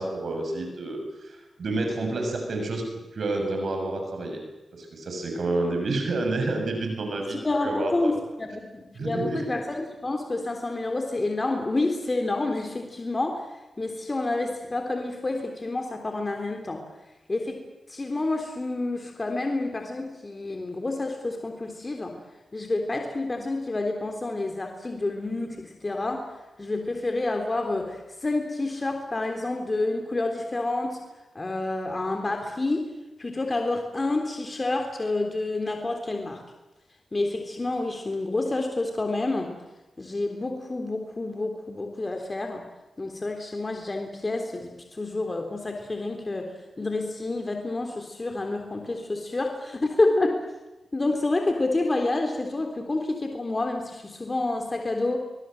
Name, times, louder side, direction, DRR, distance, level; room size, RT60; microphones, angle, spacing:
voice 1, 0.0-2.8 3.1-4.4 4.7-8.1 9.0-9.5, right 2 dB, 70° right, 3 dB, 7.2 m, -29 dB
voice 2, 7.3-13.5 13.8-16.8 17.3-17.6 17.9-22.2 22.5-26.3 26.6-31.0 31.3-32.9 33.2-36.4 37.1-39.5 40.0-42.7 43.0-50.5 50.9-55.2, left 2 dB, 40° left, 4 dB, 3.5 m, -28 dB
25.0 x 21.5 x 7.9 m, 1.0 s
supercardioid pair, 40°, 0 cm